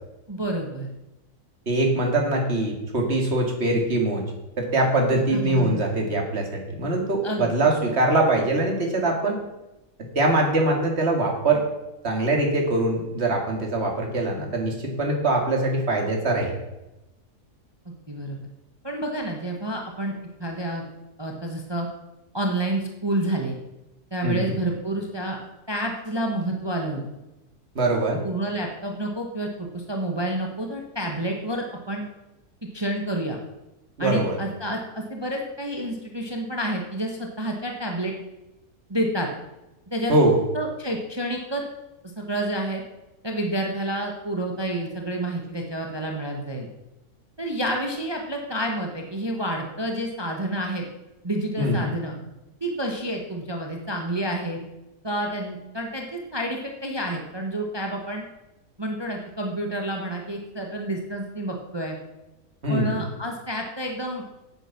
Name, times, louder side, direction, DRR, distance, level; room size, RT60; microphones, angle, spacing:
voice 1, 0.3-0.9 5.3-5.8 7.2-7.9 17.8-18.4 18.8-20.8 21.2-21.9 22.3-23.6 24.1-25.4 25.7-27.0 28.2-32.0 32.7-33.4 34.0-38.1 38.9-39.3 39.9-40.1 40.5-41.6 42.2-42.8 43.2-46.7 47.4-50.8 51.2-52.1 52.6-54.6 55.0-58.2 58.8-62.0 62.7-64.2, right 1 dB, 15° right, 1 dB, 1.2 m, -29 dB
voice 2, 1.7-4.2 4.6-9.4 10.2-11.6 12.0-16.5 24.2-24.6 27.7-28.2 34.0-34.4 40.1-40.4 51.6-51.9 62.6-63.0, right 2 dB, 40° right, 1 dB, 2.5 m, -23 dB
10.5 x 9.0 x 5.9 m, 0.97 s
omnidirectional pair, 1.7 m